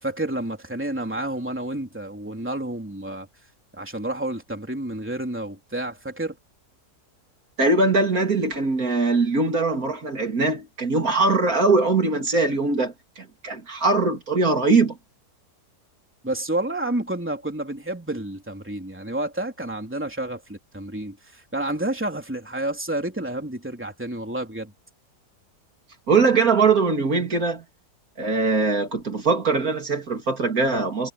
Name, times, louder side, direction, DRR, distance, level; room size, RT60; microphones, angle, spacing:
voice 1, 0.0-3.3 3.7-6.4 16.2-24.7, right 1 dB, 5° right, 3.3 m, -30 dB
voice 2, 7.6-15.0 26.1-27.6 28.2-31.1, right 3 dB, 60° right, 3.1 m, -21 dB
omnidirectional pair, 1.7 m